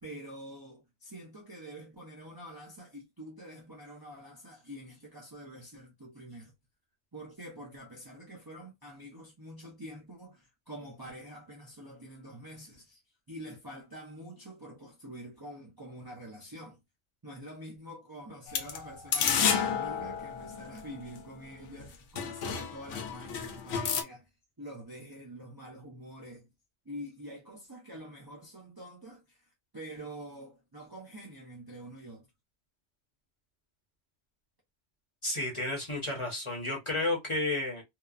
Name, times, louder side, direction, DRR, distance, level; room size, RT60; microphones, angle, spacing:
voice 1, 0.0-6.5 7.1-13.0 13.3-16.8 17.2-24.3 24.6-26.5 26.8-32.3, equal, 25° right, 0.5 m, -46 dB
sound 1, 18.5-21.2 21.8-21.9 22.1-24.0, left 7 dB, 85° left, 0.9 m, -31 dB
voice 2, 35.2-37.8, left 2 dB, 30° left, 0.8 m, -32 dB
2.9 x 2.1 x 2.4 m
omnidirectional pair, 1.2 m